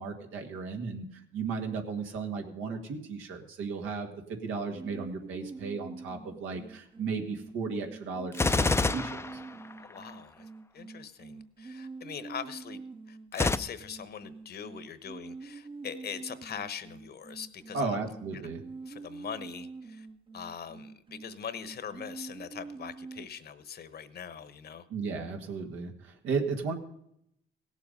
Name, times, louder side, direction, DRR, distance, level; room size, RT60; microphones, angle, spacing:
voice 1, 0.0-9.4 17.7-18.6 24.9-26.7, right 4 dB, 90° right, 4 dB, 1.7 m, -35 dB
sound 1, 4.7-23.3, right 4 dB, 25° right, 0.7 m, -46 dB
Gunshot gunfire, 8.3-10.1 13.3-13.6, left 3 dB, 15° left, 0.5 m, -27 dB
voice 2, 9.8-12.8 13.1-18.0 18.3-18.4 18.9-20.1 20.3-24.8, left 7 dB, 55° left, 13 dB, 1.0 m, -42 dB
17.0 x 7.4 x 5.3 m, 0.75 s
cardioid pair, 90°, 20 cm